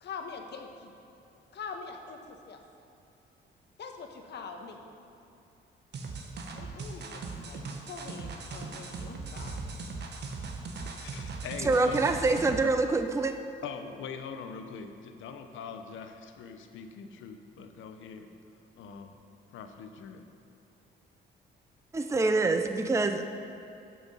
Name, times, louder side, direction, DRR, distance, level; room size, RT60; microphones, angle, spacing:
voice 1, 0.0-0.9 1.5-2.6 3.8-4.8 6.5-7.6 7.9-9.6, left 5 dB, 60° left, 4 dB, 1.2 m, -43 dB
sound 1, 5.9-12.7, right 3 dB, 60° right, 1.3 m, -39 dB
voice 2, 10.9-12.1 13.6-18.3 18.8-19.1 19.5-20.3, left 6 dB, 80° left, 7 dB, 0.9 m, -42 dB
voice 3, 11.6-13.3 21.9-23.2, right 3 dB, 15° right, 7 dB, 0.6 m, -25 dB
13.5 x 6.1 x 5.5 m, 2.7 s
cardioid pair, 90°, 20 cm